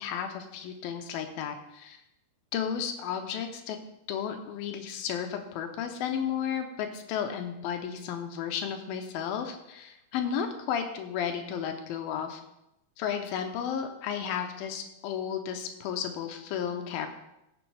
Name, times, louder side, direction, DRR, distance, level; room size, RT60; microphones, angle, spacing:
voice 1, 0.0-2.0 2.5-3.8 4.1-12.4 13.0-17.1, left 8 dB, 80° left, 5 dB, 2.5 m, -33 dB
15.5 x 7.1 x 3.3 m, 0.88 s
omnidirectional pair, 4.4 m